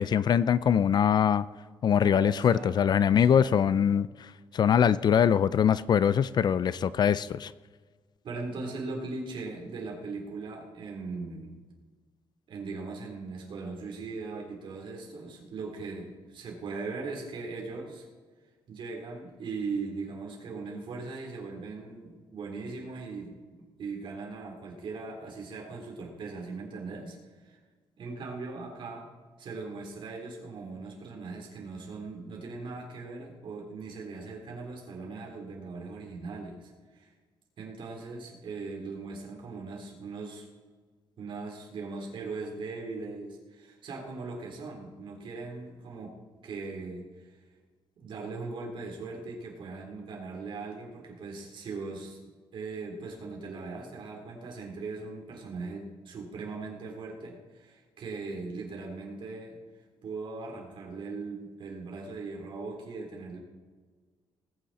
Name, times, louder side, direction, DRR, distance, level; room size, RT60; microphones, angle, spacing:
voice 1, 0.0-1.5 1.8-7.5, left 8 dB, 50° left, 17 dB, 0.4 m, -23 dB
voice 2, 1.9-3.5 8.2-11.6 12.5-18.1 18.7-23.3 23.8-27.2 27.4-27.6 28.0-29.1 29.4-37.1 37.6-40.5 41.2-46.1 46.4-47.3 48.0-52.2 52.5-59.6 60.0-63.4, right 4 dB, 60° right, 0 dB, 3.5 m, -39 dB
19.5 x 9.3 x 4.2 m, 1.5 s
cardioid pair, 115°, 9 cm